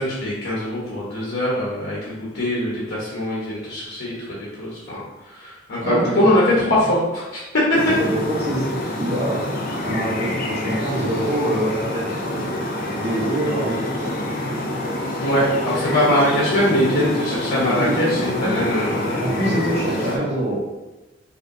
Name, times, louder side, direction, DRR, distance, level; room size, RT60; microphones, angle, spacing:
voice 1, 0.0-5.0 5.3-7.4 15.2-20.2, left 1 dB, 75° left, -7 dB, 1.1 m, -22 dB
voice 2, 5.8-6.7 8.0-9.4 9.8-12.6 13.0-14.2 17.7-18.8 19.2-20.6, right 1 dB, 35° right, -6 dB, 1.2 m, -25 dB
sound 1, 7.7-20.2, left 1 dB, 50° left, 0.6 m, -27 dB
5.5 x 2.7 x 2.7 m, 1.1 s
head